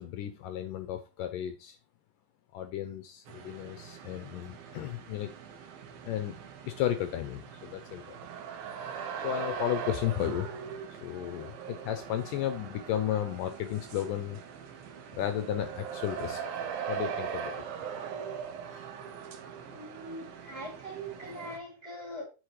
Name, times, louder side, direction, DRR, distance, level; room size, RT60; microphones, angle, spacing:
voice 1, 0.0-1.8 2.5-5.3 6.0-8.2 9.2-10.5 10.9-14.4 15.1-16.4 16.9-17.5 18.7-18.9, left 11 dB, 80° left, 2.1 m, -34 dB
sound 1, 3.3-21.6, right 7 dB, 75° right, 2.8 m, -41 dB
voice 2, 19.6-22.2, right 1 dB, 20° right, 2.5 m, -42 dB
8.3 x 6.5 x 3.2 m
omnidirectional pair, 4.2 m